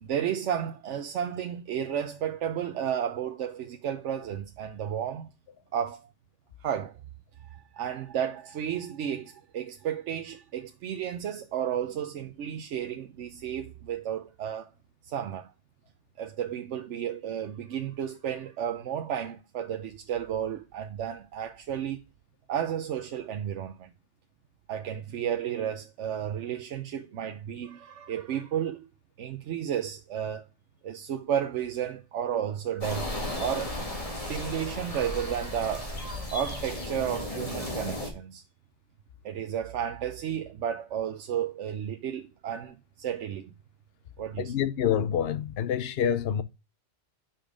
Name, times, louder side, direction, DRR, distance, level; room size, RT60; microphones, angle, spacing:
voice 1, 0.0-5.3 5.7-6.1 6.6-7.0 7.5-14.7 15.0-15.5 16.2-22.0 22.5-23.9 24.7-28.9 29.2-30.4 30.8-33.1 33.4-33.8 34.3-35.9 36.3-38.4 39.2-43.5 44.2-44.5, right 9 dB, 75° right, 1.0 m, -32 dB
sound 1, 32.8-38.1, left 1 dB, 30° left, 2.0 m, -35 dB
voice 2, 44.4-46.4, left 9 dB, 60° left, 0.8 m, -27 dB
6.0 x 5.2 x 4.9 m
omnidirectional pair, 1.3 m